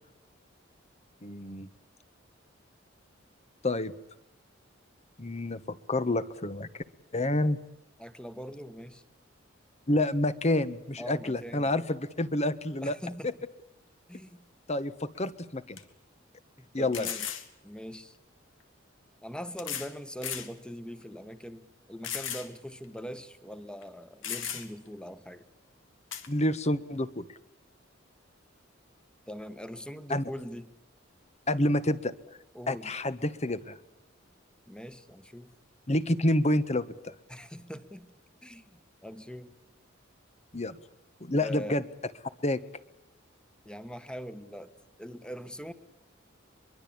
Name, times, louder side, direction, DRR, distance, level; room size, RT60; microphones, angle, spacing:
voice 1, 1.2-1.7 3.6-3.9 5.2-5.6 5.9-6.7 7.1-7.6 9.9-12.9 13.2-13.3 14.7-15.8 16.7-17.1 26.3-27.3 30.1-30.2 31.5-32.1 32.7-33.8 35.9-37.1 40.5-40.8 41.2-41.8 42.4-42.6, left 1 dB, 35° left, 13 dB, 1.4 m, -28 dB
voice 2, 8.0-9.0 11.0-11.7 12.8-13.3 14.1-14.4 16.6-17.3 17.6-18.2 19.2-25.5 29.3-30.7 32.5-32.9 34.7-35.5 37.3-38.1 38.4-39.5 41.4-41.8 43.6-44.7 45.0-45.7, equal, 5° left, 12 dB, 1.5 m, -42 dB
sound 1, 15.2-15.3 15.8-15.9 16.9-17.5 18.6-18.7 19.6-19.9 20.2-20.5 21.0-21.1 22.0-22.5 22.8-22.9 23.8-23.9 24.2-24.9 26.1-26.3, left 9 dB, 85° left, 2.7 m, -36 dB
23.5 x 23.0 x 8.8 m, 0.90 s
head